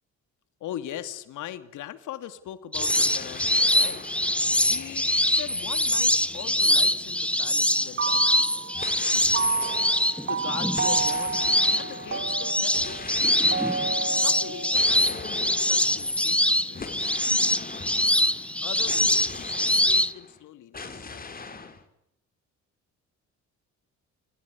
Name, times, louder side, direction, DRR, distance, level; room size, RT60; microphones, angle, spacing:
voice 1, 0.6-8.8 10.2-11.4 11.8-13.4 14.1-17.0 18.6-21.6, left 11 dB, 85° left, 11 dB, 2.7 m, -41 dB
sound 1, 2.7-7.5 8.7-20.4 20.7-21.8, left 4 dB, 30° left, 4.4 m, -41 dB
sound 2, 2.7-20.1, left 1 dB, 5° left, 1.2 m, -24 dB
Suspense music, 7.8-8.9 9.3-15.4, right 6 dB, 45° right, 2.3 m, -32 dB
30.0 x 17.0 x 9.9 m, 0.81 s
cardioid pair, 90°, 30 cm